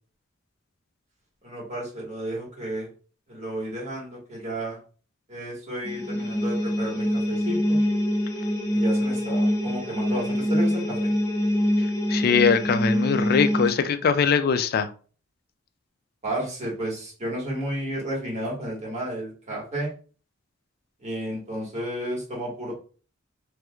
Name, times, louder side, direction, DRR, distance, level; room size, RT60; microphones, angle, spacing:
voice 1, 1.4-2.9 3.3-4.8 5.3-7.8 8.7-11.1 16.2-19.9 21.0-22.7, right 1 dB, 35° right, -4 dB, 1.5 m, -32 dB
sound 1, 5.8-13.7, equal, 15° left, 0.7 m, -25 dB
voice 2, 12.1-14.9, left 6 dB, 50° left, 11 dB, 0.3 m, -21 dB
3.1 x 3.0 x 2.3 m, 0.38 s
head